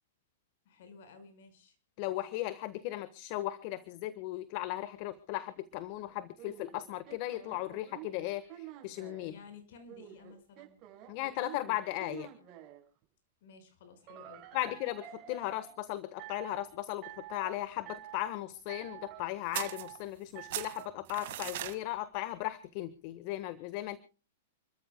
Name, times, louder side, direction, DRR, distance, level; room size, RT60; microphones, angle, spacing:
voice 1, 0.6-1.8 9.2-10.8 13.4-14.5, left 4 dB, 65° left, 9 dB, 5.1 m, -54 dB
voice 2, 2.0-9.3 11.1-12.3 14.5-24.0, left 15 dB, 45° left, 15 dB, 1.2 m, -37 dB
sound 1, 6.4-9.3 9.9-12.8 14.1-15.7 16.2-16.7 17.0-17.6 17.9-18.3 18.7-19.2 19.5-20.0 20.4-20.9, right 13 dB, 35° right, 5.1 m, -49 dB
sound 2, 19.5-20.3 20.5-21.8, right 14 dB, 60° right, 1.8 m, -38 dB
29.5 x 13.5 x 2.2 m, 0.37 s
hypercardioid pair, 130°, 0 cm